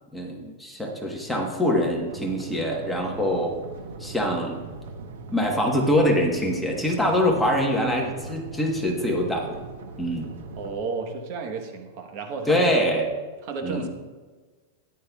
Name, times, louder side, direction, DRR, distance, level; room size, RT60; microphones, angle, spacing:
voice 1, 0.1-3.6 4.0-4.6 5.3-9.6 10.0-10.3 12.5-13.1 13.6-13.9, equal, ahead, -1 dB, 1.1 m, -24 dB
sound 1, 2.1-10.7, right 4 dB, 75° right, 1.0 m, -40 dB
voice 2, 10.6-12.7 13.4-13.9, right 4 dB, 40° right, 4 dB, 1.0 m, -32 dB
13.5 x 10.5 x 2.3 m, 1.4 s
supercardioid pair, 165°, 0 cm